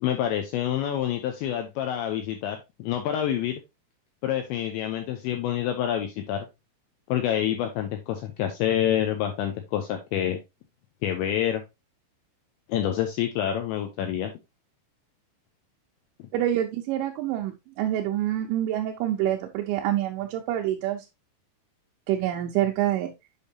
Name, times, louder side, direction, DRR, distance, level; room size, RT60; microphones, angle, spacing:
voice 1, 0.0-3.6 4.2-6.5 7.1-10.4 11.0-11.6 12.7-14.3, left 10 dB, 90° left, 6 dB, 2.6 m, -27 dB
voice 2, 16.3-21.0 22.1-23.1, right 12 dB, 80° right, 0 dB, 2.6 m, -26 dB
8.2 x 5.2 x 2.7 m, 0.22 s
omnidirectional pair, 6.0 m